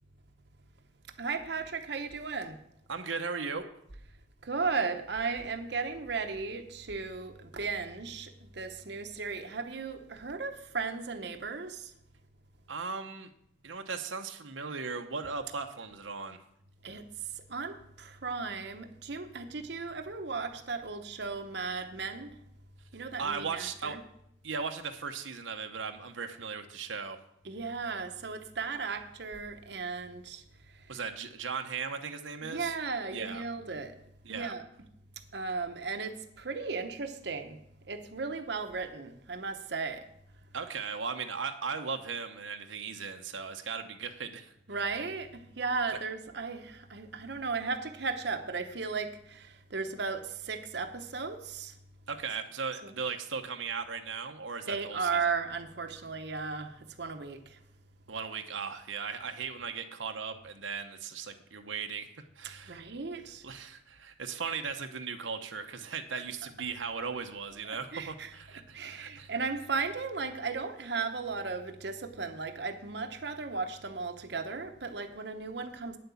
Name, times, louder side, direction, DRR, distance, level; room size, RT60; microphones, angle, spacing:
voice 1, 1.2-2.6 4.4-11.9 16.8-22.4 22.9-24.0 27.4-31.0 32.4-34.0 34.3-34.6 35.3-37.6 37.9-40.0 44.7-51.7 52.8-52.9 54.7-57.6 62.4-63.4 66.1-66.2 67.6-68.3 68.7-76.0, right 4 dB, 60° right, 7 dB, 0.9 m, -36 dB
voice 2, 2.9-3.7 12.7-13.3 13.6-16.4 23.2-24.0 24.4-27.2 30.9-32.7 33.1-33.4 34.2-34.5 40.5-44.5 52.1-55.3 58.1-62.1 62.4-62.8 63.4-69.3, right 5 dB, 85° right, 5 dB, 0.9 m, -37 dB
9.5 x 7.8 x 7.1 m, 0.75 s
head